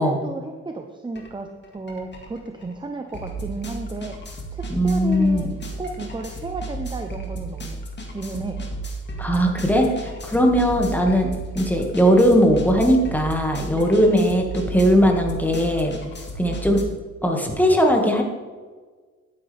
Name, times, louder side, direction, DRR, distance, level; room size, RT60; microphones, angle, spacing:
voice 1, 0.0-4.2 4.5-7.8 8.1-8.6, right 3 dB, 15° right, 5 dB, 0.8 m, -33 dB
sound 1, 1.1-1.3 1.6-16.8, right 2 dB, 35° left, 2.2 m, -33 dB
voice 2, 4.7-5.5 9.2-15.9 16.4-16.8 17.2-18.2, equal, 5° left, 1 dB, 2.1 m, -19 dB
11.5 x 9.9 x 3.6 m, 1.4 s
cardioid pair, 90°, 30 cm